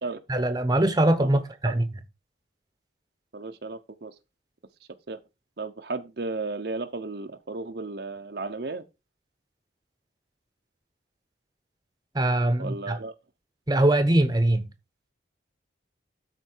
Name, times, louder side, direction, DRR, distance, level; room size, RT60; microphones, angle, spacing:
voice 1, 0.3-1.9 12.1-13.0 13.7-14.6, right 1 dB, 20° right, 0.9 m, -22 dB
voice 2, 3.3-4.1 5.1-5.2 5.6-8.8 12.6-13.1, right 3 dB, 55° right, 0.7 m, -34 dB
12.5 x 4.4 x 4.5 m
head